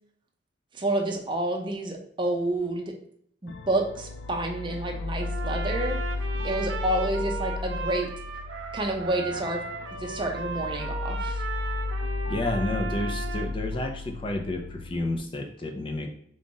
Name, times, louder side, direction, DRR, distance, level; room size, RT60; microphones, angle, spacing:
voice 1, 0.7-2.9 3.4-6.0 6.4-8.1 8.7-9.6 10.0-11.4, right 1 dB, 25° right, 2 dB, 0.6 m, -29 dB
sound 1, 3.5-15.2, left 3 dB, 90° left, 0.3 m, -34 dB
Trumpet, 5.2-13.5, right 4 dB, 85° right, 0.6 m, -36 dB
voice 2, 12.3-16.1, left 2 dB, 30° left, 3 dB, 0.5 m, -30 dB
3.8 x 2.5 x 3.8 m, 0.64 s
head